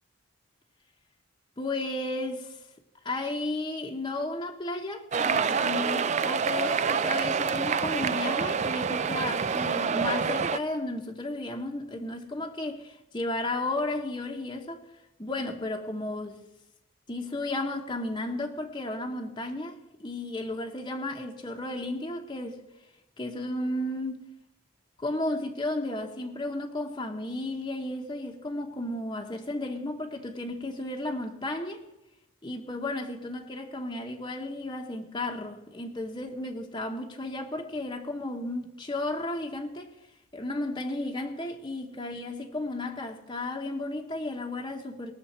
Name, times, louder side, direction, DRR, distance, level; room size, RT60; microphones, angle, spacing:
voice 1, 1.6-2.6 3.0-14.8 15.2-16.4 17.1-22.6 23.2-24.2 25.0-31.8 32.4-40.0 40.3-45.1, left 2 dB, 20° left, 0.9 m, -33 dB
sound 1, 5.1-10.6, right 6 dB, 35° right, 0.4 m, -27 dB
20.5 x 6.8 x 4.3 m
head